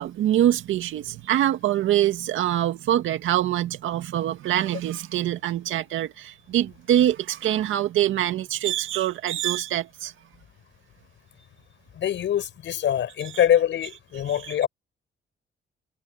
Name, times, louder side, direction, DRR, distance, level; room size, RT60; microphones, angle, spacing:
voice 1, 0.0-10.1 13.2-13.3 14.3-14.7, right 12 dB, 80° right, 2.1 m, -24 dB
voice 2, 12.0-14.7, left 10 dB, 70° left, 5.9 m, -24 dB
cardioid pair, 90°, 20 cm